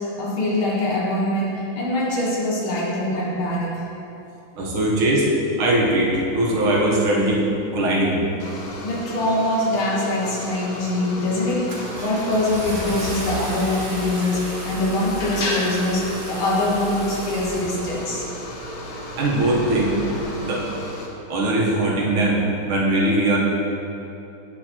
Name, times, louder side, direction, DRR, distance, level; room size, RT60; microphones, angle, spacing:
voice 1, 0.0-3.9 8.8-18.2, left 1 dB, 75° left, -4 dB, 2.1 m, -23 dB
voice 2, 4.6-5.3 5.6-7.4 7.7-8.2 19.2-19.9 20.4-20.7 21.3-23.4, right 1 dB, 80° right, -4 dB, 1.9 m, -20 dB
sound 1, 8.4-21.1, left 1 dB, 60° left, 1.1 m, -35 dB
Car / Engine starting, 10.5-10.9 11.3-18.3, right 1 dB, 40° right, 0.7 m, -34 dB
sound 2, 17.8-20.6, equal, ahead, 0.9 m, -39 dB
8.3 x 6.7 x 2.9 m, 2.9 s
omnidirectional pair, 2.3 m